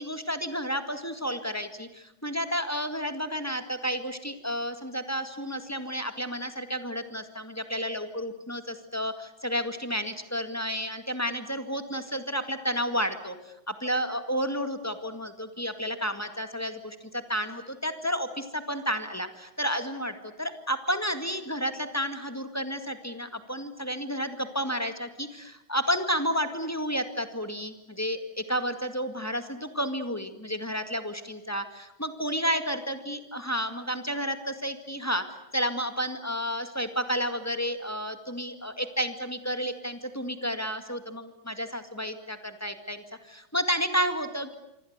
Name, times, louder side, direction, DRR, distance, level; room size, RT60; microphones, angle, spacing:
voice 1, 0.0-44.5, equal, 5° left, 8 dB, 1.3 m, -31 dB
26.5 x 25.5 x 8.1 m, 0.89 s
omnidirectional pair, 3.3 m